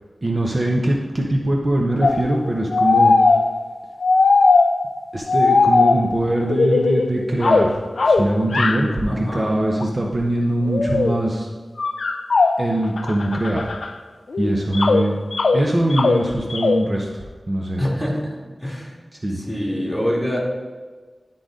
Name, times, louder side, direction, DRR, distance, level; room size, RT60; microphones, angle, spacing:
voice 1, 0.2-3.1 5.1-7.8 8.0-11.5 12.6-13.7 14.4-15.2 15.5-17.8 19.2-19.4, right 1 dB, 45° right, -1 dB, 0.8 m, -22 dB
sound 1, 2.0-5.0 5.3-7.1 7.4-8.9 9.7-9.8 10.7-11.2 11.8-13.9 14.3-16.8, left 3 dB, 85° left, 0.4 m, -18 dB
voice 2, 9.1-9.5 17.8-18.9 19.3-20.4, equal, ahead, -4 dB, 2.2 m, -25 dB
11.5 x 3.8 x 3.8 m, 1.4 s
wide cardioid pair, 55°, 0 cm